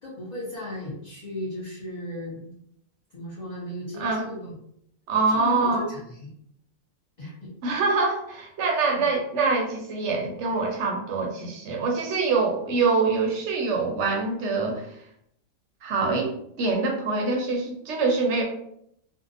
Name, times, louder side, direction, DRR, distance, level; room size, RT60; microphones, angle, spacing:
voice 1, 0.0-2.6 3.1-4.6 5.3-6.3 7.2-7.5 9.0-9.1, left 1 dB, 45° left, -7 dB, 0.6 m, -36 dB
voice 2, 5.1-5.8 7.6-14.9 15.8-16.3 16.6-18.4, right 4 dB, 65° right, 0 dB, 0.8 m, -24 dB
2.6 x 2.1 x 2.5 m, 0.71 s
omnidirectional pair, 1.4 m